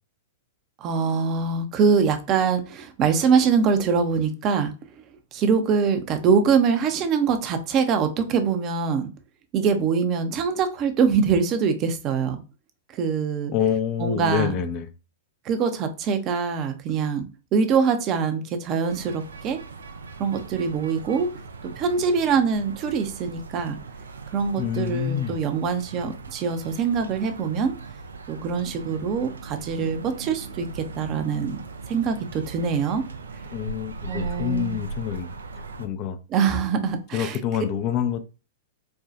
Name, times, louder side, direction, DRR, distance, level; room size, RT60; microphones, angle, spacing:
voice 1, 0.8-4.7 5.3-9.1 9.5-12.4 12.9-13.5 14.0-14.6 15.4-19.6 20.2-21.3 21.6-23.8 24.3-27.7 28.3-31.6 31.9-33.1 34.1-34.8 36.3-37.4, right 6 dB, 35° right, 0.6 m, -23 dB
voice 2, 13.5-14.9 24.6-25.4 33.5-35.3 35.8-36.2 37.1-38.3, left 9 dB, 40° left, 0.5 m, -27 dB
sound 1, 18.9-35.9, right 3 dB, 80° right, 0.5 m, -39 dB
4.4 x 2.3 x 2.5 m
hypercardioid pair, 105°, 0 cm